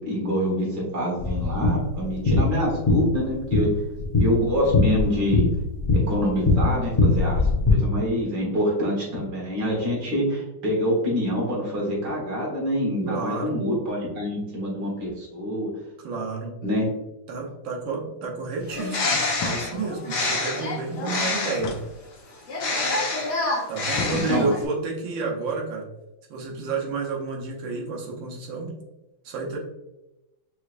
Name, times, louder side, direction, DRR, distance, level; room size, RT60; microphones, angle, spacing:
voice 1, 0.0-3.7 4.2-5.5 5.9-15.7 16.6-16.8 24.1-24.5, equal, 60° right, -3 dB, 2.0 m, -26 dB
sound 1, 1.2-7.7, left 3 dB, 35° left, 0.5 m, -22 dB
voice 2, 13.1-13.6 16.0-16.6 17.3-21.8 23.7-25.9 26.3-28.8 29.2-29.6, right 4 dB, 80° right, -1 dB, 1.7 m, -30 dB
Bird, 18.6-21.8 22.5-24.7, left 2 dB, 60° left, 1.5 m, -27 dB
sound 2, 19.3-20.1 21.6-22.5 23.9-24.8, left 4 dB, 80° left, 1.4 m, -36 dB
5.5 x 3.2 x 2.5 m, 0.97 s
omnidirectional pair, 2.1 m